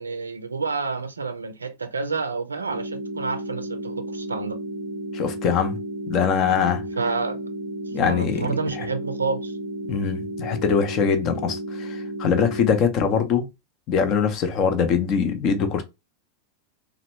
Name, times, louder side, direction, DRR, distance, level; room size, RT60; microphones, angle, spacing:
voice 1, 0.0-4.6 7.0-7.4 8.0-9.5, right 4 dB, 75° right, 0.4 m, -29 dB
sound 1, 2.7-12.7, right 1 dB, 90° left, 0.7 m, -33 dB
voice 2, 5.1-5.8 6.1-6.8 7.9-8.5 8.8-8.9 9.9-13.5 13.9-15.8, left 6 dB, 35° left, 0.6 m, -22 dB
2.9 x 2.0 x 2.8 m
figure-of-eight pair, 90°, 0 cm